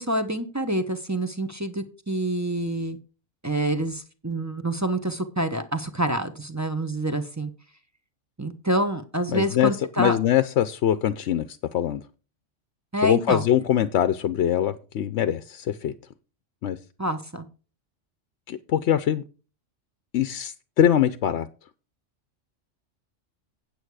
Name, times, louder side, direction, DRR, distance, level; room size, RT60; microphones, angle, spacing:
voice 1, 0.0-3.0 3.4-7.5 8.4-10.2 12.9-13.4 17.0-17.4, right 1 dB, 15° right, 8 dB, 0.9 m, -27 dB
voice 2, 9.3-9.7 10.0-12.0 13.0-15.9 16.6-16.8 18.5-19.2 20.1-21.5, left 10 dB, 70° left, 12 dB, 0.9 m, -23 dB
8.8 x 8.4 x 4.7 m, 0.35 s
omnidirectional pair, 1.3 m